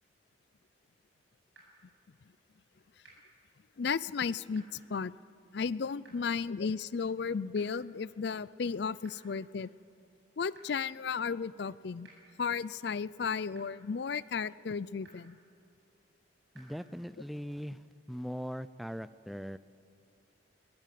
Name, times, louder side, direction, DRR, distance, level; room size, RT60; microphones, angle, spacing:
sound 1, 1.5-1.6 3.0-3.1 4.5-4.6 6.0-6.1 7.5-7.6 9.0-9.1 10.5-10.6 12.0-12.1 13.5-13.6 15.0-15.1 16.5-16.6, right 3 dB, 60° right, 7.4 m, -56 dB
voice 1, 3.8-5.1 5.5-9.7 10.4-12.1 12.4-15.4, left 5 dB, 55° left, 19 dB, 0.4 m, -34 dB
voice 2, 16.5-17.8 18.1-19.6, equal, ahead, 14 dB, 0.4 m, -40 dB
21.5 x 20.5 x 7.6 m, 2.6 s
head